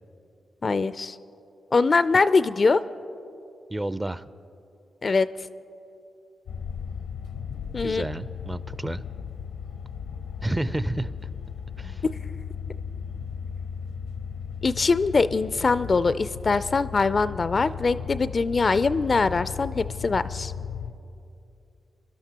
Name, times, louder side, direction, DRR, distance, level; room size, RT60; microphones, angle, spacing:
voice 1, 0.6-1.2 1.7-2.8 5.0-5.3 7.7-8.1 14.6-20.5, left 4 dB, 50° left, 15 dB, 0.3 m, -22 dB
voice 2, 3.7-4.2 7.8-9.0 10.4-11.3 11.8-12.0, right 1 dB, 20° right, 15 dB, 0.5 m, -30 dB
sound 1, 6.5-20.9, left 7 dB, 85° left, 0.6 m, -36 dB
24.0 x 12.0 x 2.9 m, 2.7 s
supercardioid pair, 40°, 0 cm